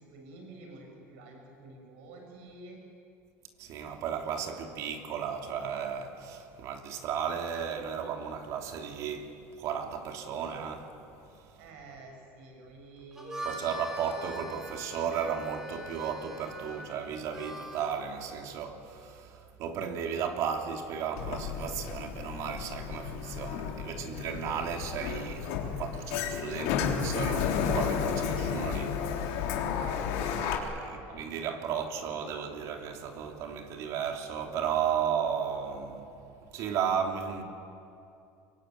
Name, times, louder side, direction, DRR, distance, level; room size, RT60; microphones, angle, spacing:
voice 1, 0.0-2.8 11.6-13.7 29.4-31.5, right 2 dB, 85° right, 7.5 m, -50 dB
voice 2, 3.6-9.3 9.6-10.9 13.4-29.5 30.1-36.0 36.5-37.4, right 7 dB, 55° right, 3.1 m, -34 dB
Harmonica, 13.0-18.0, equal, 5° right, 3.6 m, -42 dB
Sliding door, 21.2-30.6, left 7 dB, 85° left, 3.7 m, -32 dB
24.5 x 23.0 x 9.6 m
cardioid pair, 140°, 7 cm